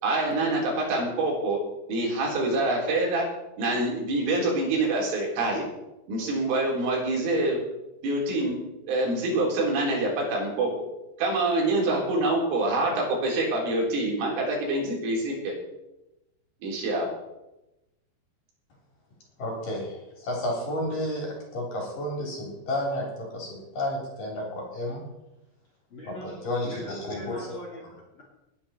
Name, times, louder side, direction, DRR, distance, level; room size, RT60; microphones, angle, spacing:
voice 1, 0.0-1.6 1.9-3.3 3.6-5.6 6.1-7.6 8.0-8.5 8.9-10.7 11.2-15.5 16.6-17.1, right 2 dB, 80° right, -2 dB, 6.5 m, -26 dB
voice 2, 19.4-25.0 26.0-27.6, left 1 dB, 45° left, -1 dB, 4.9 m, -32 dB
voice 3, 25.9-28.2, equal, 30° left, -3 dB, 3.1 m, -42 dB
20.0 x 10.5 x 4.4 m, 0.95 s
omnidirectional pair, 5.6 m